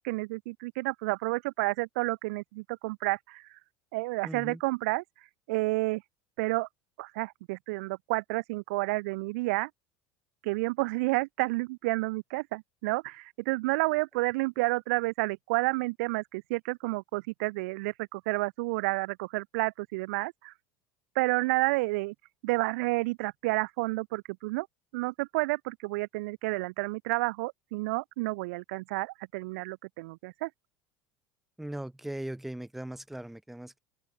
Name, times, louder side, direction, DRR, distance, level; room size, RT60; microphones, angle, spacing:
voice 1, 0.0-3.6 3.9-5.0 5.5-6.0 6.4-6.7 7.0-9.7 10.4-20.5 21.1-22.1 22.4-24.7 24.9-30.5, right 24 dB, 85° right, 3.4 m, -30 dB
voice 2, 4.2-4.6 31.6-33.8, right 1 dB, 5° right, 7.4 m, -39 dB
open air
cardioid pair, 170°, 8 cm